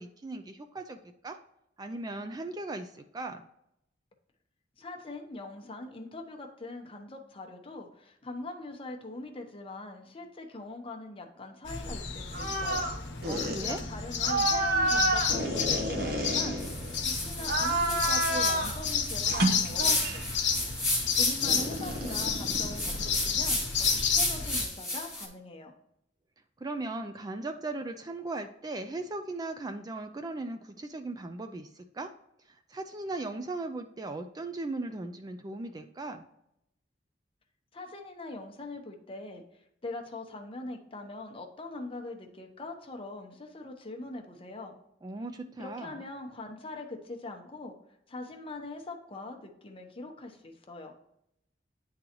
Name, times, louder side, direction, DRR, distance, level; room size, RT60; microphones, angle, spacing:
voice 1, 0.0-1.4 1.8-3.5 13.2-13.8 26.6-32.1 32.5-36.3 45.0-46.0, right 2 dB, 20° right, 6 dB, 0.4 m, -38 dB
voice 2, 4.8-12.9 13.6-20.2 21.1-25.7 37.7-39.4 39.8-44.7 45.6-47.7 48.1-50.9, left 2 dB, 30° left, 3 dB, 0.9 m, -42 dB
sound 1, 11.7-24.6, left 6 dB, 80° left, 1.0 m, -31 dB
sound 2, 12.3-12.9 13.2-13.6 14.2-17.0 17.4-18.8 19.3-20.3 21.4-23.2, right 2 dB, 55° right, 1.0 m, -30 dB
sound 3, 16.6-25.3, left 1 dB, ahead, 1.6 m, -34 dB
9.9 x 3.8 x 2.9 m, 0.79 s
head